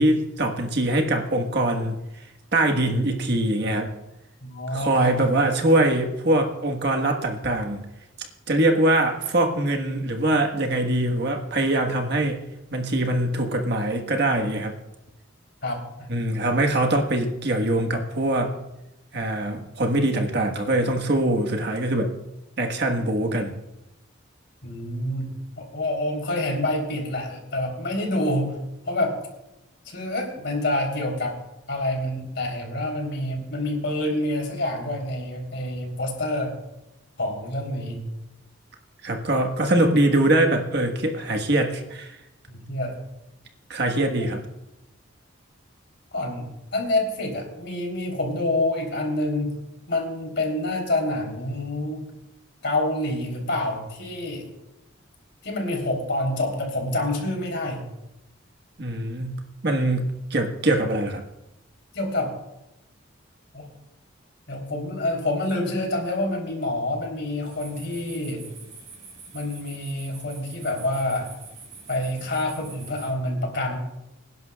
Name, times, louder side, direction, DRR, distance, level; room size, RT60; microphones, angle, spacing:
voice 1, 0.0-2.0 2.5-3.9 4.7-7.8 8.5-12.4 12.7-14.8 16.1-18.6 19.1-22.1 22.6-23.6 39.0-42.2 43.7-44.4 58.8-59.3 59.6-61.2, right 1 dB, 55° right, 3 dB, 1.4 m, -23 dB
voice 2, 4.4-5.1 15.6-15.8 24.6-25.3 25.6-28.6 28.8-29.2 29.8-31.4 31.7-36.5 37.2-38.0 42.5-43.0 46.1-46.5 46.7-49.5 49.9-52.0 52.6-54.5 55.4-57.8 61.9-62.3 63.5-63.7 64.5-68.4 69.3-71.3 71.9-73.8, left 1 dB, 60° left, 1 dB, 3.5 m, -27 dB
sound 1, 67.5-73.1, right 4 dB, 35° right, 5.3 m, -45 dB
26.0 x 11.0 x 2.4 m, 0.93 s
head